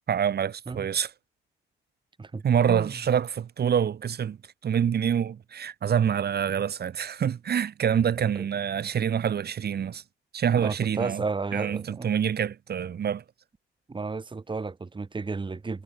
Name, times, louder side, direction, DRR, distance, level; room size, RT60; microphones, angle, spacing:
voice 1, 0.1-1.1 2.4-4.4 4.6-10.0 10.3-11.2 11.5-13.2, right 8 dB, 55° right, 2.6 m, -26 dB
voice 2, 2.2-3.0 8.2-8.5 10.5-12.1 13.9-15.8, right 4 dB, 25° right, 2.3 m, -33 dB
cardioid pair, 90°, 20 cm